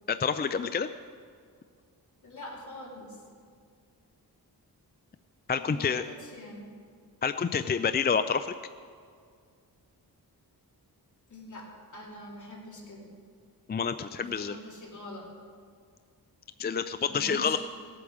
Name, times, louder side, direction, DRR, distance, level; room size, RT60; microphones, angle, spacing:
voice 1, 0.1-0.9 5.5-6.0 7.2-8.5 13.7-14.6 16.6-17.6, left 6 dB, 25° left, 11 dB, 0.4 m, -28 dB
voice 2, 2.2-3.1 5.5-6.7 11.3-13.1 14.2-15.3 17.1-17.6, left 1 dB, 50° left, -3 dB, 3.3 m, -44 dB
18.0 x 8.5 x 6.4 m, 2.1 s
wide cardioid pair, 100°, 39 cm